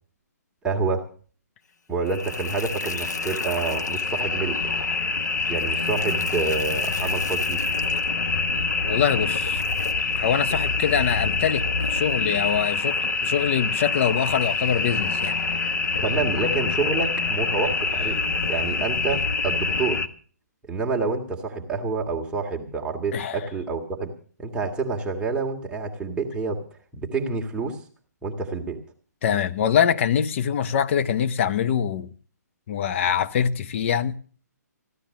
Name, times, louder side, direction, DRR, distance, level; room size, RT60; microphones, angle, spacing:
voice 1, 0.6-1.1 1.9-4.6 5.5-7.6 16.0-18.2 18.5-20.0 20.7-24.1 24.4-26.6 26.9-27.8 28.2-28.8, right 4 dB, 10° right, 1.7 m, -28 dB
sound 1, 2.1-20.1, left 4 dB, 75° left, 1.3 m, -26 dB
voice 2, 8.8-9.6 10.2-15.4 23.1-23.4 29.2-32.1 32.7-34.2, left 8 dB, 45° left, 0.9 m, -24 dB
15.0 x 12.0 x 6.4 m
figure-of-eight pair, 135°, 9 cm